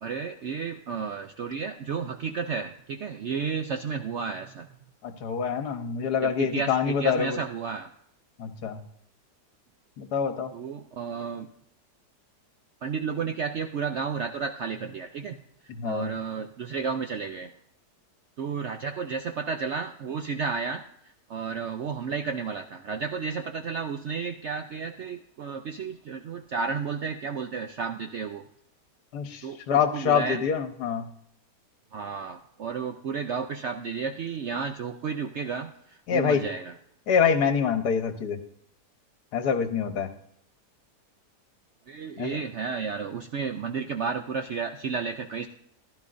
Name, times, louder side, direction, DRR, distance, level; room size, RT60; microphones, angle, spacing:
voice 1, 0.0-4.7 6.2-7.9 10.5-11.5 12.8-15.4 15.8-17.5 18.4-20.8 21.3-28.4 29.4-30.4 31.9-36.7 41.9-45.5, right 5 dB, 70° right, 6 dB, 0.7 m, -32 dB
voice 2, 5.0-7.4 8.4-8.8 10.0-10.5 15.7-16.1 29.1-31.1 36.1-36.4 37.1-38.4 39.3-40.1 42.2-42.4, left 7 dB, 70° left, 8 dB, 1.5 m, -26 dB
15.0 x 11.5 x 2.5 m, 0.71 s
omnidirectional pair, 1.8 m